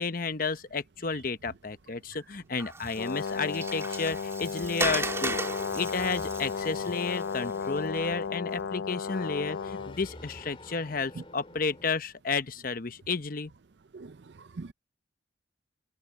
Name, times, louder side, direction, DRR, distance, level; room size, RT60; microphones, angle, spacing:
voice 1, 0.0-5.4 5.7-13.5, left 4 dB, 45° left, 0.9 m, -32 dB
Water, 2.6-8.0, right 3 dB, 15° right, 3.1 m, -36 dB
Brass instrument, 3.0-10.0, left 5 dB, 70° left, 0.4 m, -34 dB
sound 1, 5.3-11.9, left 2 dB, 30° left, 3.2 m, -48 dB
voice 2, 13.9-14.7, right 3 dB, 60° right, 0.5 m, -42 dB
head